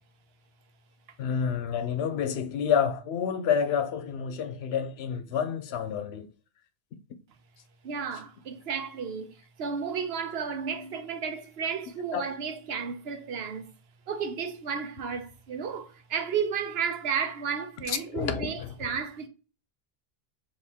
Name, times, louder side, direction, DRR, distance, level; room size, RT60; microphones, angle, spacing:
voice 1, 1.2-6.3 12.1-12.2 17.9-18.7, left 7 dB, 85° left, 0.8 m, -29 dB
voice 2, 7.8-9.3 9.6-13.7 14.1-19.3, right 6 dB, 75° right, 0.9 m, -33 dB
3.5 x 2.8 x 4.2 m
omnidirectional pair, 1.0 m